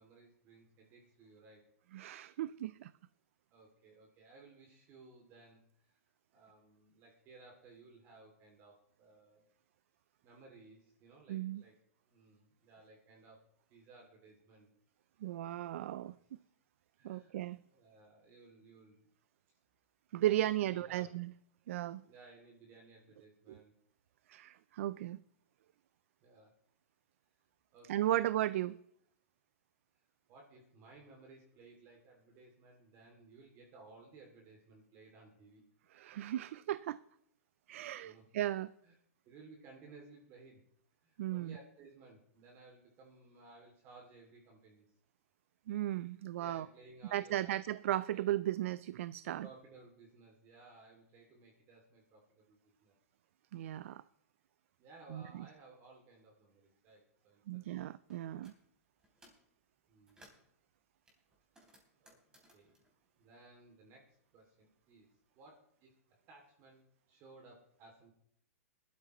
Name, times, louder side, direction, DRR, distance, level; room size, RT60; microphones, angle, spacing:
voice 1, 0.0-1.6 3.5-5.9 6.3-9.4 10.2-11.8 12.1-13.4 13.7-14.7 16.0-16.1 17.0-17.4 17.7-19.1 20.2-21.2 22.1-23.7 26.2-26.5 27.7-28.3 30.3-35.6 37.7-38.3 38.8-38.9 39.3-40.6 41.0-44.8 46.4-47.6 48.1-48.3 49.4-52.9 54.8-57.9 59.9-60.4 62.0-62.2 62.5-62.7 63.2-65.9 66.3-68.1, right 3 dB, 30° right, 2.6 m, -59 dB
voice 2, 1.9-2.9 11.3-11.6 15.2-16.2 17.0-17.6 20.1-21.3 21.7-22.0 23.5-23.6 24.3-25.2 27.9-28.8 35.9-37.0 37.7-38.7 41.2-41.6 45.7-46.7 47.1-49.5 53.5-54.0 55.1-55.5 57.5-58.5, right 13 dB, 60° right, 0.4 m, -36 dB
sound 1, 58.1-58.6 59.0-59.5 59.9-60.5 61.1-64.0 64.3-65.4, equal, 10° right, 3.4 m, -65 dB
19.5 x 12.5 x 3.1 m
hypercardioid pair, 150°, 8 cm